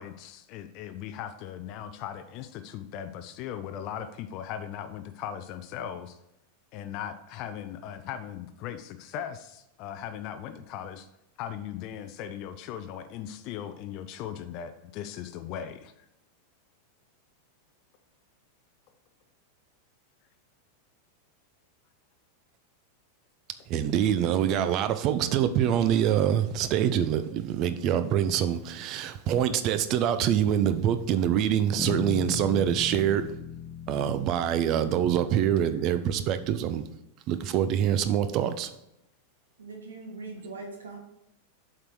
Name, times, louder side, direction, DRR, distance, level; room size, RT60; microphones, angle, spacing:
voice 1, 0.0-6.2 6.7-11.1 11.4-15.9, left 9 dB, 40° left, 9 dB, 0.5 m, -38 dB
voice 2, 23.7-33.3 33.9-36.8 37.3-38.7, right 10 dB, 40° right, 11 dB, 0.6 m, -25 dB
sound 1, 31.8-36.1, left 9 dB, 5° left, 0.8 m, -38 dB
voice 3, 39.6-41.0, right 3 dB, 70° right, 2 dB, 1.6 m, -41 dB
7.5 x 4.3 x 4.8 m, 0.85 s
figure-of-eight pair, 90°, 0 cm